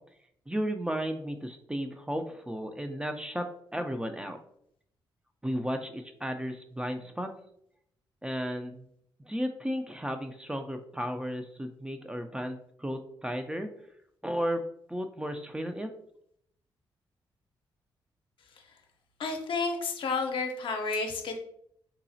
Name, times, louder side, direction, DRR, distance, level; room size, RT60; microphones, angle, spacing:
voice 1, 0.5-3.5 3.7-4.4 5.4-7.3 8.2-8.8 9.3-13.7 14.2-14.6 14.9-15.9, equal, 10° right, 6 dB, 0.4 m, -34 dB
voice 2, 19.2-21.4, left 4 dB, 65° left, 4 dB, 0.6 m, -31 dB
3.9 x 2.0 x 2.6 m, 0.70 s
supercardioid pair, 60°, 9 cm